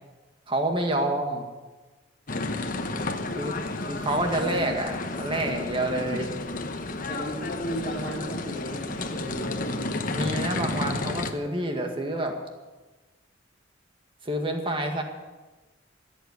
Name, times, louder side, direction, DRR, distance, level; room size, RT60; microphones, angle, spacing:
voice 1, 0.5-1.4 2.9-3.0 3.4-3.6 3.9-6.3 10.1-12.3 14.2-15.0, right 1 dB, 25° right, 3 dB, 1.9 m, -28 dB
sound 1, 2.3-11.3, left 2 dB, 45° left, 1.0 m, -31 dB
voice 2, 4.1-4.8 7.1-9.7, equal, 30° left, -10 dB, 3.9 m, -35 dB
16.0 x 8.2 x 9.7 m, 1.2 s
head